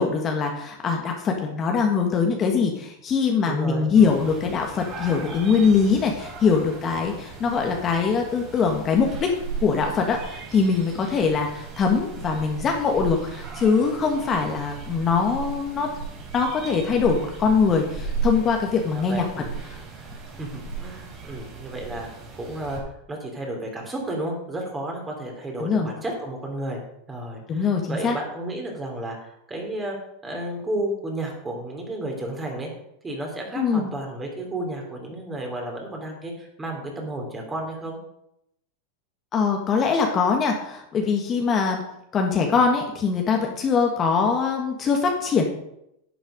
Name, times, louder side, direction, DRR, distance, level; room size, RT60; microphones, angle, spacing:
voice 1, 0.0-9.3 9.6-15.9 16.3-19.2 19.7-19.8 25.6-25.9 27.5-28.2 33.5-33.9 39.3-41.8 42.1-45.4, left 5 dB, 30° left, 2 dB, 1.6 m, -22 dB
voice 2, 3.4-3.9 18.9-19.6 20.4-22.1 22.3-22.8 23.1-26.8 27.1-30.0 30.2-32.7 33.0-38.0, right 1 dB, 15° right, 1 dB, 3.4 m, -32 dB
sound 1, 4.0-22.8, right 5 dB, 35° right, 4.2 m, -36 dB
11.0 x 7.9 x 5.2 m, 0.79 s
supercardioid pair, 125°, 0 cm